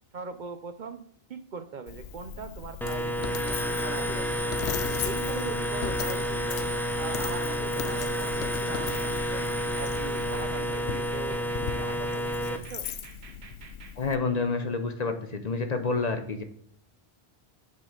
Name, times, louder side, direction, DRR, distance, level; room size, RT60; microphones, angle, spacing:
voice 1, 0.1-1.0 1.3-4.3 4.9-6.7 7.0-9.5 9.8-12.9, right 5 dB, 55° right, 9 dB, 0.7 m, -41 dB
Coin (dropping), 1.9-14.2, left 8 dB, 85° left, 0.8 m, -38 dB
sound 1, 2.8-12.6, equal, 5° left, 0.4 m, -30 dB
sound 2, 7.5-14.0, right 5 dB, 85° right, 1.2 m, -48 dB
voice 2, 14.0-16.4, left 4 dB, 45° left, 7 dB, 0.7 m, -28 dB
8.6 x 5.5 x 3.7 m, 0.67 s
omnidirectional pair, 1.0 m